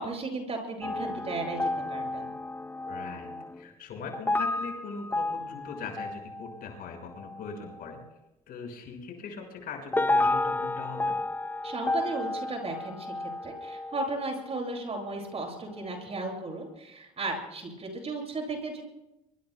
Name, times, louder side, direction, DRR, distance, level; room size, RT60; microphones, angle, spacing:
voice 1, 0.0-2.3 11.6-18.8, right 2 dB, 35° right, 2 dB, 7.5 m, -35 dB
sound 1, 0.8-3.6 4.1-6.6 7.2-7.5 7.7-7.9 9.9-15.4 15.8-15.9, left 2 dB, 10° left, 0.7 m, -32 dB
voice 2, 2.9-8.0 8.5-11.2, left 5 dB, 55° left, 2 dB, 5.8 m, -40 dB
25.5 x 23.5 x 2.3 m, 0.88 s
supercardioid pair, 80°, 19 cm